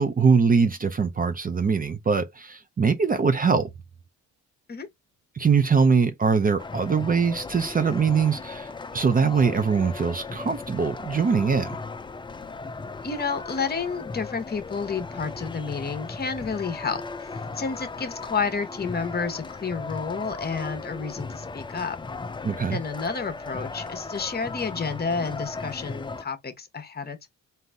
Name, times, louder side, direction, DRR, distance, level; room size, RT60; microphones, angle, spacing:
voice 1, 0.0-3.7 5.4-11.8 22.4-22.8, right 5 dB, 30° right, 0.6 m, -22 dB
sound 1, 6.6-26.2, left 3 dB, 15° left, 0.4 m, -37 dB
voice 2, 13.0-17.3 17.6-22.0 22.7-27.3, left 5 dB, 30° left, 1.0 m, -30 dB
3.8 x 2.7 x 3.4 m
cardioid pair, 90°, 30 cm